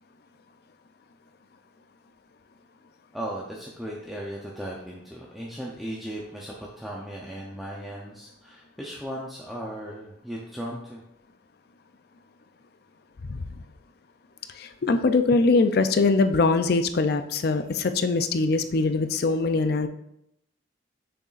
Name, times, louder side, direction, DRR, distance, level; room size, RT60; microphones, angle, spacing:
voice 1, 3.1-11.0, right 1 dB, ahead, -4 dB, 0.6 m, -37 dB
voice 2, 14.6-19.9, left 3 dB, 55° left, 10 dB, 0.4 m, -22 dB
6.9 x 6.2 x 2.5 m, 0.80 s
head